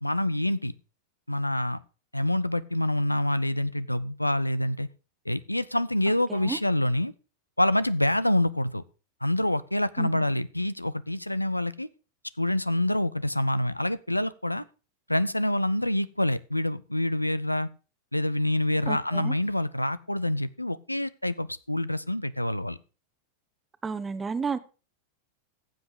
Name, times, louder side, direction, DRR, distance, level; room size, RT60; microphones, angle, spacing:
voice 1, 0.0-0.7 1.3-1.8 2.1-4.9 5.3-7.1 7.6-8.8 9.2-11.9 12.4-14.6 15.1-17.7 18.1-22.8, left 1 dB, 85° left, 18 dB, 0.6 m, -26 dB
voice 2, 18.9-19.3 23.8-24.6, right 5 dB, 15° right, 13 dB, 1.0 m, -32 dB
15.0 x 7.8 x 4.8 m, 0.34 s
figure-of-eight pair, 90°, 0 cm